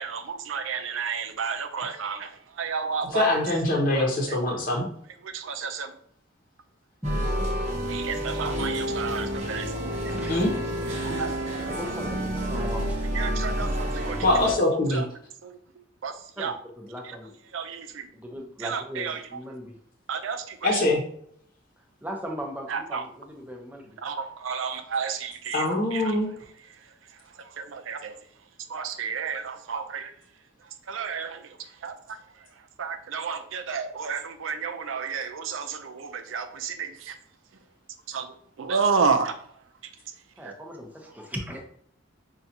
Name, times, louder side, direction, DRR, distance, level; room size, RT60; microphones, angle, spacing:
voice 1, 0.0-3.3 3.7-4.4 5.2-5.9 7.9-9.7 11.0-11.4 13.1-14.2 14.9-15.1 15.4-15.6 16.0-16.5 17.5-18.1 18.6-19.2 20.1-20.8 22.7-23.0 24.0-24.1 24.4-25.6 25.9-26.2 27.4-28.2 28.7-30.1 30.9-31.6 31.8-32.2 32.8-37.2 38.1-39.5, right 5 dB, 85° right, 7 dB, 0.5 m, -31 dB
voice 2, 3.1-4.8 10.3-10.5 14.2-15.0 20.6-21.0 25.5-26.3, left 1 dB, 45° left, -1 dB, 0.9 m, -23 dB
sound 1, 7.0-14.5, equal, 35° right, 0.9 m, -29 dB
voice 3, 9.8-10.5 11.5-13.3 16.4-17.3 18.1-19.7 21.8-23.8 40.4-41.6, equal, 10° right, 1 dB, 0.6 m, -38 dB
5.3 x 2.4 x 2.8 m, 0.64 s
head